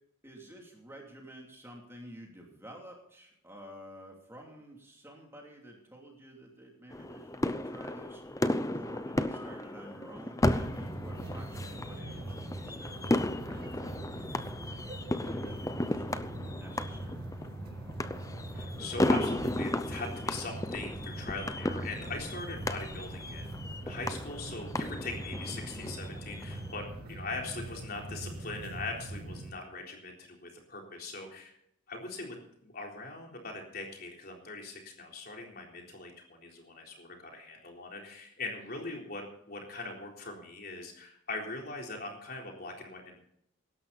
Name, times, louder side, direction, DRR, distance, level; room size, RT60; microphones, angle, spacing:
voice 1, 0.2-8.2 8.7-13.0 13.5-14.2 14.7-16.1 16.5-17.2, equal, 10° right, 0 dB, 2.8 m, -51 dB
sound 1, 6.9-26.7, left 1 dB, 15° left, 0.6 m, -34 dB
sound 2, 10.5-29.5, right 1 dB, 45° right, 2.4 m, -42 dB
voice 2, 18.5-31.5 31.9-43.2, left 3 dB, 45° left, 1 dB, 3.8 m, -41 dB
17.0 x 12.5 x 4.1 m, 0.74 s
head